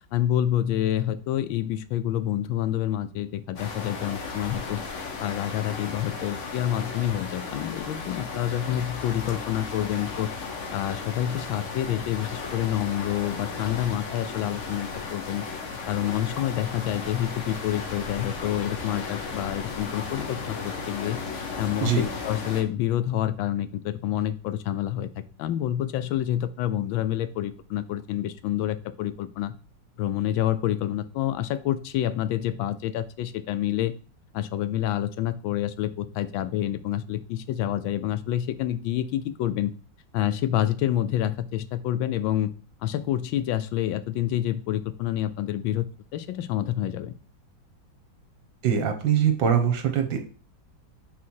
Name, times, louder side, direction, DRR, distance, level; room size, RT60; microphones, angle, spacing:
voice 1, 0.0-4.8 5.2-10.3 10.7-15.5 15.9-21.2 21.6-21.9 22.2-29.5 30.0-33.9 34.3-39.7 40.1-42.5 42.8-45.9 46.1-47.1, left 12 dB, 90° left, 14 dB, 1.4 m, -28 dB
sound 1, 3.6-22.6, left 4 dB, 45° left, 1.1 m, -35 dB
voice 2, 48.6-50.2, right 8 dB, 75° right, 5 dB, 1.8 m, -23 dB
5.5 x 4.3 x 4.5 m, 0.38 s
omnidirectional pair, 2.1 m